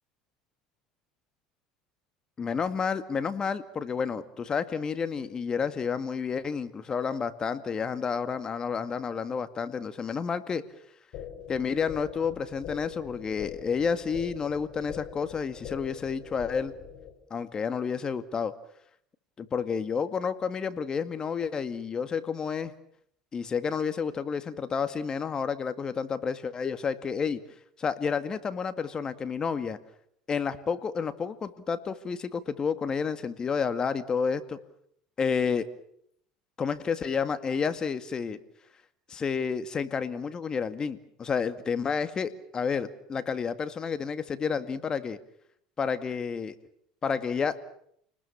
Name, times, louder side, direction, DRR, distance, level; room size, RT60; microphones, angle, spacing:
voice 1, 2.4-10.6 11.5-16.7 17.3-18.5 19.4-22.7 23.3-27.4 27.8-29.8 30.3-34.6 35.2-35.7 36.6-38.4 39.1-45.2 45.8-46.5 47.0-47.6, left 6 dB, 30° left, 11 dB, 2.0 m, -30 dB
sound 1, 11.1-17.1, left 9 dB, 60° left, 5.3 m, -43 dB
29.5 x 20.0 x 7.2 m, 0.67 s
supercardioid pair, 100°, 3 cm